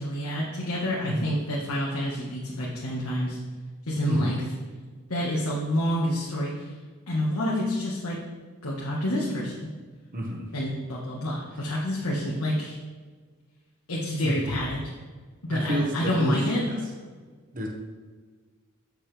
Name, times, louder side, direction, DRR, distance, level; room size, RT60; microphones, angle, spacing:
voice 1, 0.0-3.4 3.9-4.4 5.1-6.7 7.1-8.2 8.6-9.6 10.5-12.8 13.9-14.8 15.4-16.7, equal, 85° left, -5 dB, 1.4 m, -28 dB
voice 2, 10.1-10.5 14.2-14.3 15.5-16.7 17.5-17.7, right 1 dB, 40° right, 1 dB, 1.3 m, -30 dB
8.0 x 6.6 x 3.4 m, 1.5 s
head